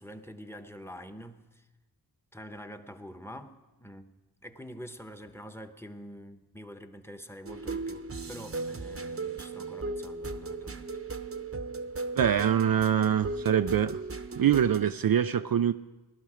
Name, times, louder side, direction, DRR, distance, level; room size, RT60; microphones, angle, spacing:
voice 1, 0.0-1.7 2.3-4.1 4.4-10.9, equal, 5° left, 1.1 m, -46 dB
sound 1, 7.5-14.9, right 3 dB, 35° right, 0.9 m, -37 dB
voice 2, 12.2-14.0 14.4-15.7, right 9 dB, 60° right, 0.5 m, -24 dB
17.0 x 11.5 x 5.0 m
cardioid pair, 40°, 41 cm